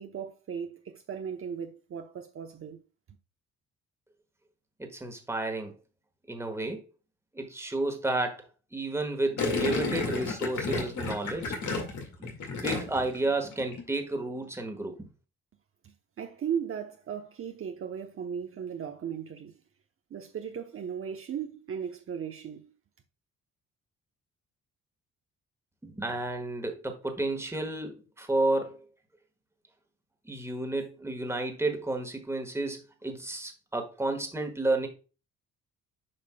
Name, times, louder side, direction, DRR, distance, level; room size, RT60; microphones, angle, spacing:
voice 1, 0.0-2.8 15.8-19.6 20.1-22.7, right 7 dB, 45° right, 0.8 m, -37 dB
voice 2, 4.8-5.7 6.3-6.8 7.3-11.5 12.2-12.3 12.6-15.1 25.8-28.8 30.2-34.9, right 2 dB, 10° right, 1.4 m, -31 dB
Gurgling, 9.4-13.2 13.4-13.8, left 3 dB, 75° left, 2.0 m, -31 dB
8.5 x 5.0 x 2.2 m
cardioid pair, 90°, 30 cm